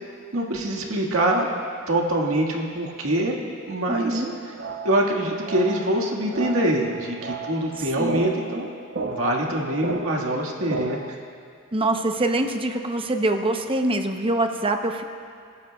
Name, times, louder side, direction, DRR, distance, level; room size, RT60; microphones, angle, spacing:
voice 1, 0.3-1.5 1.9-4.2 4.8-8.7 9.0-11.2, right 1 dB, 75° right, -1 dB, 1.8 m, -24 dB
voice 2, 3.9-4.3 8.0-8.2 11.7-15.0, right 2 dB, 25° right, 5 dB, 0.8 m, -24 dB
sound 1, 4.1-11.1, right 4 dB, 55° right, 0.8 m, -34 dB
28.0 x 12.5 x 2.3 m, 2.4 s
head